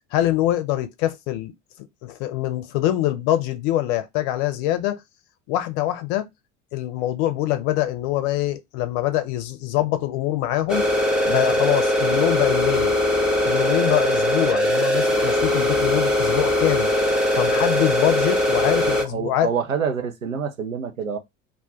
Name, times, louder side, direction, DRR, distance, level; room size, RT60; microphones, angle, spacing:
voice 1, 0.1-1.5 2.0-5.0 5.5-6.3 6.7-10.9 11.3-13.0 13.4-16.9 17.3-19.5, left 14 dB, 45° left, 0.6 m, -24 dB
sound 1, 10.7-19.0, left 1 dB, ahead, 0.6 m, -21 dB
voice 2, 18.8-21.2, right 6 dB, 85° right, 0.6 m, -27 dB
2.4 x 2.2 x 3.6 m
figure-of-eight pair, 70°, 39 cm